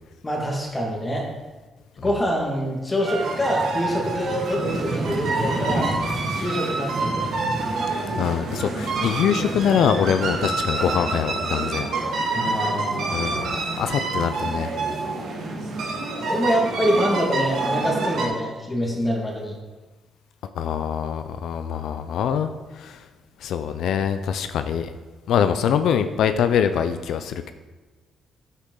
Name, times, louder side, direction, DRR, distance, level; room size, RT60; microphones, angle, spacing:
voice 1, 0.2-1.3 2.0-5.9 6.4-7.3 12.3-13.3 16.3-19.5, equal, 20° left, -2 dB, 2.1 m, -25 dB
sound 1, 3.0-18.3, right 3 dB, 70° right, 2.0 m, -27 dB
voice 2, 7.9-11.9 13.1-14.7 20.6-23.0 23.4-24.9 25.3-27.5, left 8 dB, 75° left, 10 dB, 0.5 m, -24 dB
8.3 x 8.1 x 3.9 m, 1.2 s
cardioid pair, 90°, 0 cm